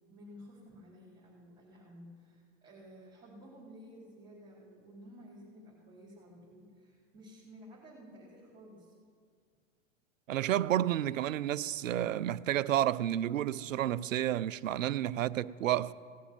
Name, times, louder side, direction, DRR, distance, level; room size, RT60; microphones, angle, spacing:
voice 1, 0.1-9.0, equal, 10° right, 4.2 m, -53 dB
voice 2, 10.3-15.9, right 12 dB, 75° right, 0.6 m, -30 dB
17.5 x 7.0 x 8.7 m
figure-of-eight pair, 100°, 40 cm